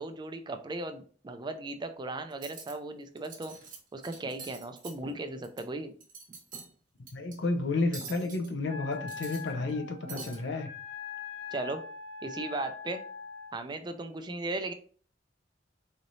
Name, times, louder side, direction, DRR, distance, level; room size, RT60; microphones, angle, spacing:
voice 1, 0.0-3.6 3.9-5.9 11.5-11.8 12.2-13.0 13.5-14.7, right 2 dB, 25° right, 7 dB, 0.4 m, -37 dB
Cutlery silverware, 2.3-2.7 3.2-3.8 4.0-5.6 6.0-6.7 7.1-7.3 7.9-8.5 8.9-9.8 10.1-10.4, right 4 dB, 50° right, 1.2 m, -45 dB
voice 2, 7.1-10.7, left 3 dB, 70° left, 5 dB, 0.6 m, -31 dB
Wind instrument woodwind instrument, 8.7-13.5, left 6 dB, 35° left, 1.5 m, -42 dB
4.0 x 3.1 x 2.6 m, 0.43 s
head